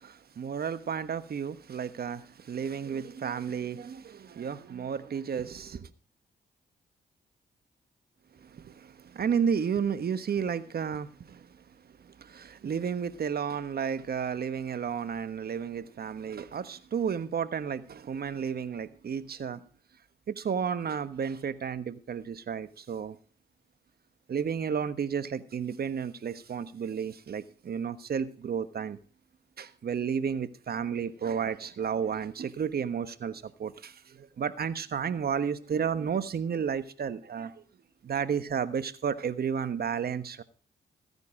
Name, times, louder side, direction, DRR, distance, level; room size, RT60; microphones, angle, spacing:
voice 1, 0.0-5.9 8.4-11.5 12.2-19.6 20.3-23.2 24.3-29.0 29.6-37.5 38.0-40.4, right 7 dB, 60° right, 1.2 m, -32 dB
15.5 x 9.6 x 4.8 m
supercardioid pair, 50°, 18 cm